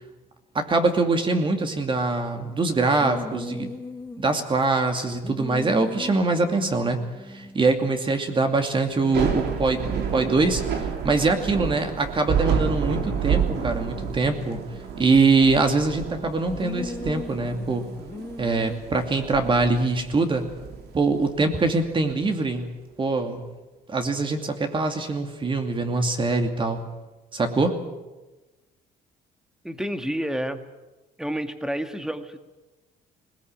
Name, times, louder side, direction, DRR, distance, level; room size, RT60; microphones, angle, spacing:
voice 1, 0.5-3.8 4.2-14.6 15.0-17.9 18.4-20.4 20.9-22.7 23.0-23.4 23.9-26.9 27.3-27.7, right 3 dB, 30° right, 6 dB, 2.6 m, -23 dB
sound 1, 3.0-4.7 5.2-8.1 8.4-8.5 8.7-12.2 12.7-15.5 16.5-18.8, left 2 dB, 15° left, 1.9 m, -39 dB
Thunder / Rain, 8.9-22.1, right 7 dB, 75° right, 3.4 m, -30 dB
voice 2, 29.6-30.6 31.2-32.4, equal, 5° right, 8 dB, 1.8 m, -29 dB
20.5 x 18.5 x 9.0 m, 1.1 s
cardioid pair, 110°, 17 cm